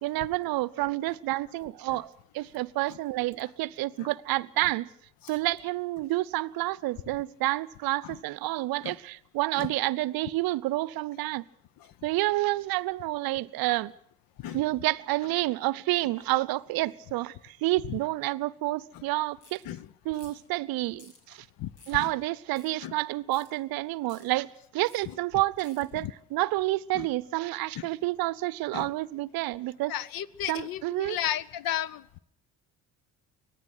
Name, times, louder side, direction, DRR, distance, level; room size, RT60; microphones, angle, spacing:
voice 1, 0.0-2.1 2.3-4.9 5.3-11.4 12.0-13.9 14.5-19.6 20.1-21.4 21.9-29.9 30.5-31.2, right 18 dB, 55° right, 0.7 m, -29 dB
sound 1, 19.4-19.6 20.2-20.5 21.0-21.2 21.8-22.0 22.5-22.7 23.3-23.5 24.0-24.2 24.9-25.0 25.6-25.8, left 3 dB, 70° left, 6.1 m, -54 dB
voice 2, 21.6-22.1 22.8-22.9 25.0-25.1 25.9-26.1 26.9-27.1 27.7-27.9 28.7-28.9 29.9-32.2, left 12 dB, 50° left, 0.9 m, -34 dB
25.0 x 18.5 x 6.2 m
hypercardioid pair, 55°, 44 cm